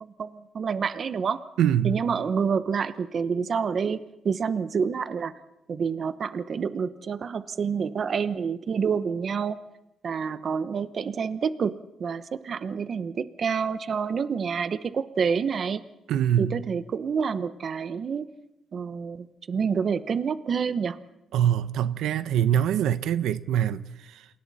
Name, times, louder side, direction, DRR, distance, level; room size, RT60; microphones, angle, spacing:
voice 1, 0.0-1.4 1.8-5.3 5.7-9.6 10.0-15.8 16.4-18.3 18.7-21.0, right 6 dB, 40° right, 1.0 m, -28 dB
voice 2, 1.6-2.0 16.1-16.6 21.3-24.3, right 10 dB, 85° right, 0.9 m, -24 dB
29.0 x 28.0 x 4.2 m
cardioid pair, 150°, 0 cm